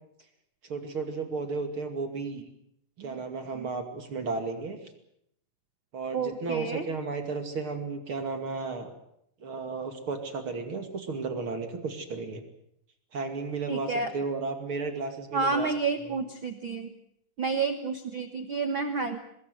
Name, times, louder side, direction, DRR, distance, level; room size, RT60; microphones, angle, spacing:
voice 1, 0.6-2.4 3.0-4.8 5.9-8.9 9.4-12.4 13.1-15.7 16.0-16.2, right 4 dB, 40° right, 6 dB, 2.9 m, -33 dB
voice 2, 6.1-6.9 13.7-14.1 15.3-16.9 17.4-19.2, right 4 dB, 55° right, 8 dB, 1.4 m, -30 dB
24.0 x 20.5 x 8.0 m, 0.74 s
omnidirectional pair, 4.0 m